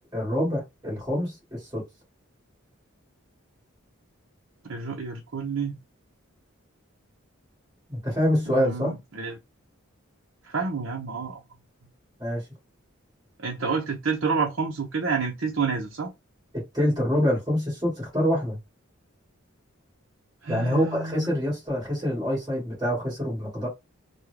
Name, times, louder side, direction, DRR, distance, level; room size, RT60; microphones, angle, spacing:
voice 1, 0.1-1.8 7.9-9.0 12.2-12.4 16.5-18.6 20.5-23.7, equal, 20° right, 2.1 m, -26 dB
voice 2, 4.6-5.8 8.5-9.4 10.4-11.4 13.4-16.1 20.4-21.4, right 5 dB, 65° right, 0.8 m, -29 dB
3.5 x 2.3 x 3.3 m
head